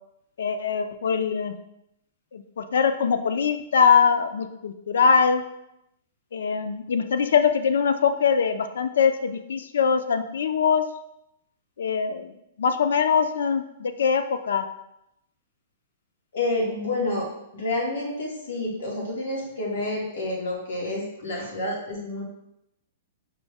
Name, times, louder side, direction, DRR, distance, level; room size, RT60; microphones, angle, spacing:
voice 1, 0.4-1.6 2.3-5.4 6.3-10.8 11.8-12.3 12.6-14.6, left 6 dB, 85° left, 8 dB, 0.3 m, -22 dB
voice 2, 16.3-17.3 17.5-22.2, left 2 dB, 60° left, -1 dB, 1.1 m, -29 dB
5.1 x 2.1 x 3.4 m, 0.82 s
hypercardioid pair, 175°, 0 cm